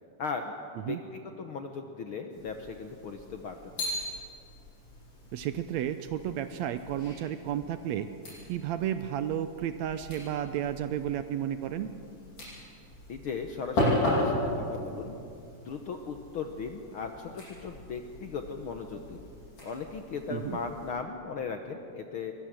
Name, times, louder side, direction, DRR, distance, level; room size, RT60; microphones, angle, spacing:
voice 1, 0.2-0.5 0.8-3.8 13.1-15.2 15.6-19.3 19.6-22.3, left 5 dB, 65° left, 5 dB, 1.3 m, -37 dB
sound 1, 2.3-20.9, left 1 dB, 90° left, 9.4 m, -37 dB
voice 2, 5.3-8.1 8.5-11.9 20.3-20.6, right 10 dB, 75° right, 11 dB, 1.7 m, -32 dB
23.0 x 20.5 x 7.7 m, 2.6 s
omnidirectional pair, 3.6 m